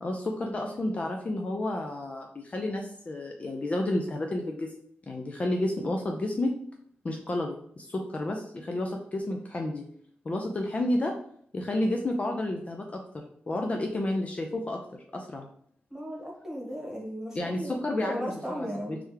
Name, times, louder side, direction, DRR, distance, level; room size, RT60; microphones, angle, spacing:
voice 1, 0.0-4.7 5.1-6.5 7.0-9.9 10.2-11.1 11.5-14.8 15.1-15.5 17.3-19.0, left 1 dB, 35° left, 2 dB, 0.4 m, -31 dB
voice 2, 15.9-19.0, equal, 10° right, -3 dB, 1.5 m, -36 dB
3.4 x 3.2 x 3.3 m, 0.64 s
wide cardioid pair, 105°, 4 cm